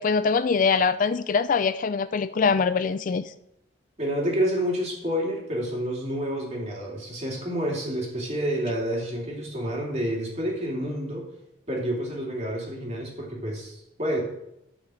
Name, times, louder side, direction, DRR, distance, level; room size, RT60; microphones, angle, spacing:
voice 1, 0.0-3.3, left 5 dB, 45° left, 13 dB, 0.3 m, -23 dB
voice 2, 4.0-11.2 11.7-14.2, equal, 35° right, -2 dB, 2.8 m, -29 dB
11.0 x 6.0 x 6.3 m, 0.84 s
head